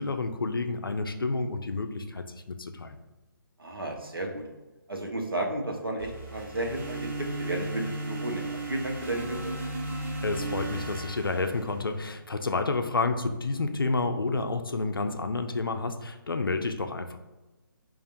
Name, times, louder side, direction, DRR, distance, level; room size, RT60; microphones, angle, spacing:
voice 1, 0.0-3.0 10.2-17.2, left 3 dB, 75° left, 7 dB, 0.4 m, -30 dB
voice 2, 3.6-4.4 4.9-9.5, right 1 dB, 90° right, 0 dB, 0.8 m, -33 dB
sound 1, 6.0-12.2, right 2 dB, 35° right, 1.0 m, -36 dB
5.4 x 2.5 x 2.5 m, 1.1 s
figure-of-eight pair, 145°, 12 cm